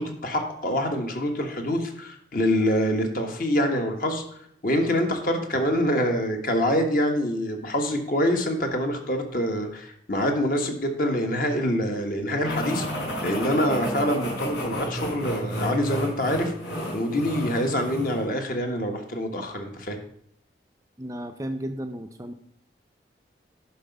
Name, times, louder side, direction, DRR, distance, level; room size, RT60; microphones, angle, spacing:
voice 1, 0.0-4.2 4.6-16.5 16.9-20.0, equal, 50° left, 4 dB, 1.5 m, -25 dB
sound 1, 12.4-18.3, equal, 85° left, 4.2 m, -31 dB
voice 2, 21.0-22.3, right 1 dB, 20° right, 7 dB, 0.5 m, -33 dB
10.5 x 5.8 x 5.3 m, 0.70 s
head